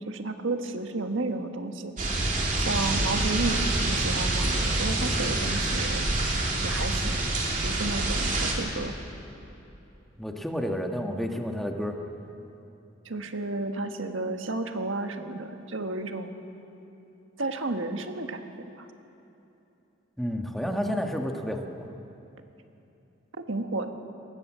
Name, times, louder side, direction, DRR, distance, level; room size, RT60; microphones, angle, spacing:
voice 1, 0.0-2.2 2.6-6.0 6.6-7.2 7.6-8.9 13.0-16.4 17.4-18.5 18.7-18.9 23.5-23.9, right 2 dB, 90° right, 6 dB, 1.4 m, -32 dB
sound 1, 2.0-8.5, right 2 dB, 40° right, 3.0 m, -26 dB
voice 2, 10.2-12.0 20.2-21.9, equal, ahead, 3 dB, 1.3 m, -30 dB
21.0 x 18.5 x 7.4 m, 2.9 s
head